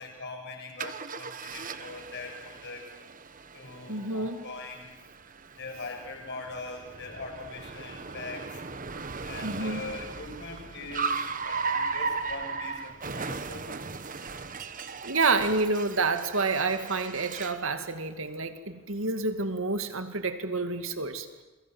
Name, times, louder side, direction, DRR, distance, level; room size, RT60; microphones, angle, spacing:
voice 1, 0.0-2.8 3.5-4.9 5.6-8.4 9.2-11.2 11.4-13.8, left 3 dB, 55° left, 3 dB, 7.0 m, -41 dB
Car, 0.8-17.7, right 4 dB, 40° right, 1.3 m, -37 dB
voice 2, 3.9-4.4 9.4-9.8 15.0-21.4, right 3 dB, 70° right, 8 dB, 2.3 m, -29 dB
29.0 x 23.0 x 7.9 m, 1.1 s
head